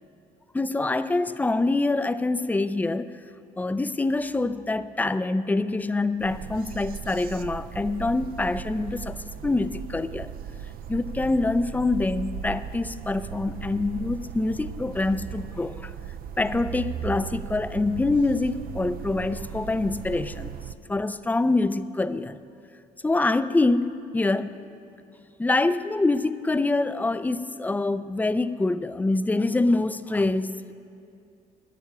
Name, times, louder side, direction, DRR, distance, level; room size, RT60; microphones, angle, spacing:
voice 1, 0.5-3.1 3.6-10.3 10.9-15.9 16.4-20.5 20.9-22.4 23.0-24.5 25.4-30.7, left 2 dB, 10° left, 13 dB, 0.4 m, -25 dB
sound 1, 6.2-20.7, right 9 dB, 60° right, 0.5 m, -37 dB
11.5 x 7.2 x 9.8 m, 2.6 s
cardioid pair, 110°, 17 cm